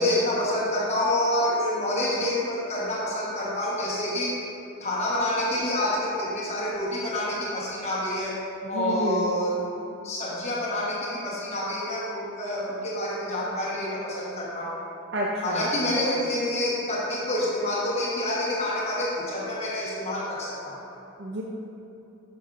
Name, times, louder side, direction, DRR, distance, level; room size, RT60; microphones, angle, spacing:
voice 1, 0.0-4.3 4.8-8.4 8.7-9.6 10.0-14.7 15.4-20.7, left 1 dB, 30° left, -7 dB, 1.1 m, -27 dB
voice 2, 8.6-9.3 15.1-15.9 21.2-21.4, right 1 dB, 50° right, -3 dB, 0.5 m, -29 dB
10.5 x 5.8 x 2.5 m, 3.0 s
head